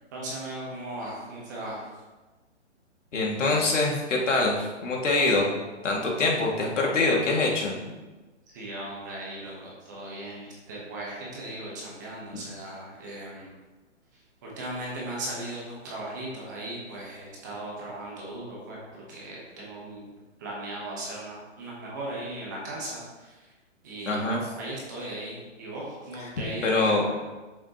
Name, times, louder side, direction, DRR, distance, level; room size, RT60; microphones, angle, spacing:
voice 1, 0.1-2.0 8.5-13.5 14.1-20.1 20.4-23.5 23.8-27.2, right 1 dB, 15° right, -4 dB, 1.0 m, -38 dB
voice 2, 3.1-5.5 5.8-7.7 24.1-24.4 26.6-27.1, left 2 dB, 80° left, -1 dB, 2.3 m, -24 dB
8.5 x 6.8 x 3.0 m, 1.2 s
hypercardioid pair, 175°, 36 cm